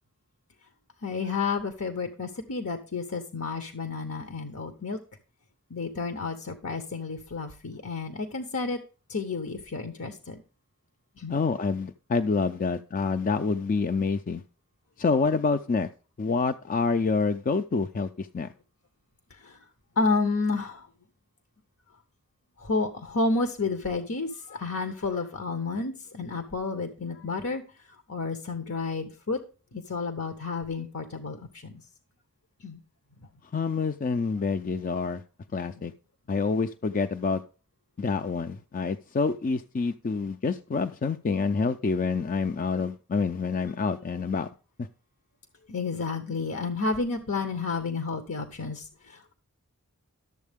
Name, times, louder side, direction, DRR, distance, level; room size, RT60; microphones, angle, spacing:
voice 1, 1.0-5.0 5.7-8.8 9.1-10.4 11.2-11.4 19.3-19.6 20.0-20.9 22.6-27.6 28.1-29.4 29.7-31.8 32.6-32.8 45.7-49.3, left 3 dB, 70° left, 7 dB, 1.0 m, -31 dB
voice 2, 11.3-14.4 15.0-15.9 16.2-18.5 33.5-35.2 35.5-35.9 36.3-37.4 38.0-44.5 44.8-44.9, left 4 dB, 35° left, 8 dB, 0.4 m, -27 dB
12.0 x 7.3 x 3.5 m, 0.37 s
head